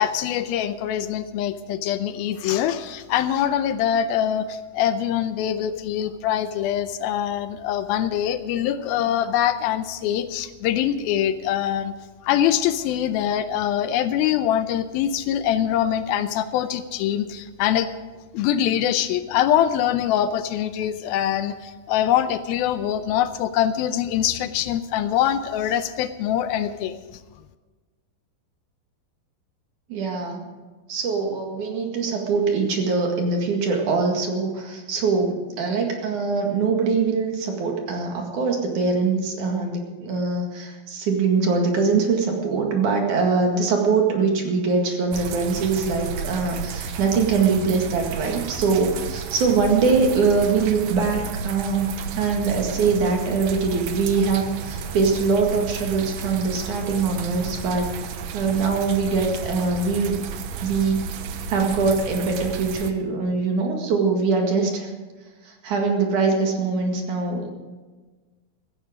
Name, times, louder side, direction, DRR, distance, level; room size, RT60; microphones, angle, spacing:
voice 1, 0.0-11.9 12.2-17.9 18.3-27.0, left 10 dB, 80° left, 11 dB, 2.4 m, -23 dB
voice 2, 29.9-30.4 30.9-57.9 58.3-60.2 60.6-61.1 61.5-64.9 65.4-67.5, right 4 dB, 55° right, 1 dB, 3.1 m, -23 dB
sound 1, 45.1-62.9, right 6 dB, 80° right, 1.5 m, -33 dB
16.0 x 14.5 x 5.1 m, 1.3 s
omnidirectional pair, 4.5 m